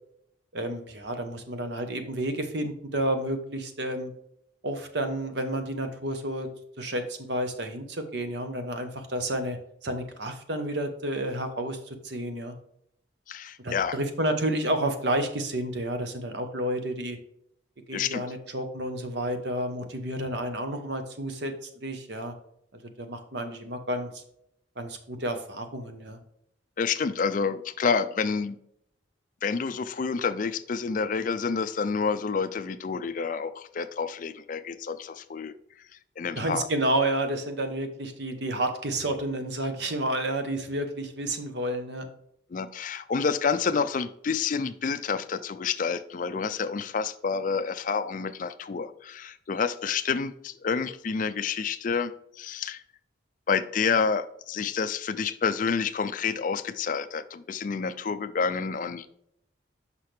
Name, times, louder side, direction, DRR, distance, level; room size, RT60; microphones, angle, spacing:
voice 1, 0.5-4.1 4.6-6.5 6.8-9.6 9.8-12.5 13.6-17.2 17.9-22.3 22.7-24.2 24.8-26.2 36.4-42.1, right 1 dB, 60° right, 7 dB, 0.9 m, -30 dB
voice 2, 13.3-14.0 17.9-18.2 26.8-28.6 29.4-35.5 36.2-36.7 42.5-52.8 53.5-59.1, left 5 dB, 40° left, 12 dB, 0.4 m, -29 dB
6.0 x 5.6 x 3.3 m, 0.73 s
head